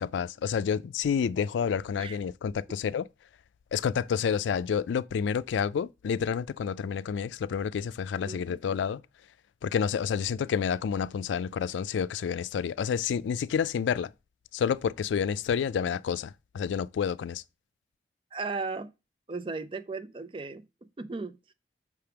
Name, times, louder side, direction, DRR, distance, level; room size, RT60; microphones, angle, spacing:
voice 1, 0.0-3.1 3.7-9.0 9.6-14.1 14.5-17.4, left 7 dB, 90° left, 0.3 m, -29 dB
voice 2, 8.2-8.6 18.3-18.9 19.3-21.4, right 3 dB, 30° right, 0.4 m, -36 dB
5.8 x 3.4 x 5.7 m
head